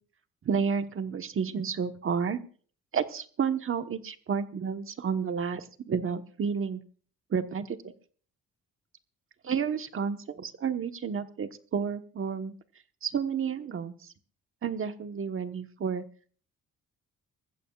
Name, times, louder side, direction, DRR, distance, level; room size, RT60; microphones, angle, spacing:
voice 1, 0.4-2.4 2.9-6.8 7.3-7.6 9.4-12.5 13.0-13.9 14.6-16.0, right 6 dB, 45° right, 8 dB, 1.2 m, -31 dB
20.5 x 15.0 x 2.4 m, 0.43 s
cardioid pair, 90°, 30 cm